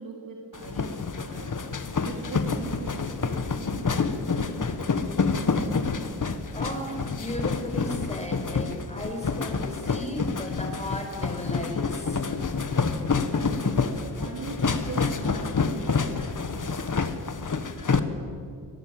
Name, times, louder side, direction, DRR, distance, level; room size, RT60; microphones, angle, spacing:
voice 1, 0.0-1.5 2.0-4.3 13.4-16.9, right 4 dB, 55° right, 0 dB, 3.2 m, -41 dB
sound 1, 0.5-18.0, left 4 dB, 50° left, 1.6 m, -28 dB
voice 2, 6.3-12.2, equal, 15° left, 3 dB, 5.4 m, -35 dB
sound 2, 11.7-16.7, left 1 dB, 70° left, 7.9 m, -50 dB
25.0 x 19.0 x 8.0 m, 2.4 s
wide cardioid pair, 90°, 41 cm